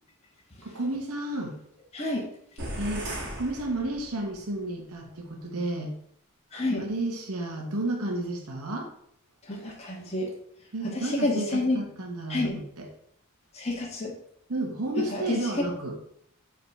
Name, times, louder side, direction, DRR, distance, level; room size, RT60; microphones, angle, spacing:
voice 1, 0.6-1.6 2.8-3.1 3.4-5.9 6.7-8.9 10.7-12.9 14.5-16.0, right 1 dB, 85° right, 1 dB, 1.2 m, -32 dB
voice 2, 1.9-2.3 6.5-6.8 9.5-10.3 10.9-11.8 12.3-12.5 13.5-14.1 15.1-15.3, left 2 dB, 30° left, -3 dB, 1.3 m, -29 dB
sound 1, 2.6-4.4, right 1 dB, 50° right, 1.9 m, -37 dB
5.5 x 3.9 x 5.9 m, 0.70 s
head